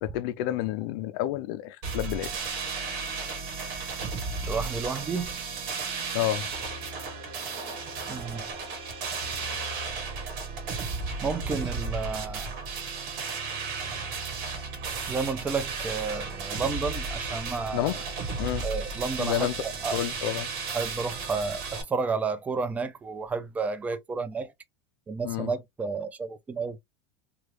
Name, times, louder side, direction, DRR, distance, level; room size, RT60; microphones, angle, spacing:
voice 1, 0.0-2.3 6.1-6.5 17.7-18.0 18.4-18.7 19.2-19.6 19.9-20.5 25.2-25.5, left 14 dB, 60° left, 0.5 m, -29 dB
sound 1, 1.8-21.8, right 4 dB, 55° right, 1.3 m, -34 dB
voice 2, 4.4-5.6 8.1-8.5 11.2-12.5 15.1-18.0 18.6-20.0 20.7-24.5 25.1-26.8, right 4 dB, 10° right, 0.3 m, -31 dB
3.1 x 2.3 x 3.0 m
supercardioid pair, 155°, 14 cm